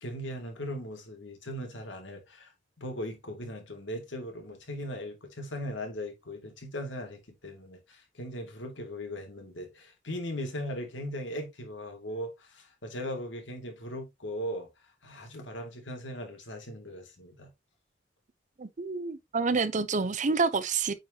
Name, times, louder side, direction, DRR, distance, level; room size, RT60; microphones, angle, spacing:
voice 1, 0.0-2.5 2.8-14.7 15.0-17.5, equal, 80° left, 2.3 m, -38 dB
voice 2, 18.6-20.9, right 4 dB, 40° right, 0.6 m, -28 dB
8.8 x 4.5 x 2.8 m
head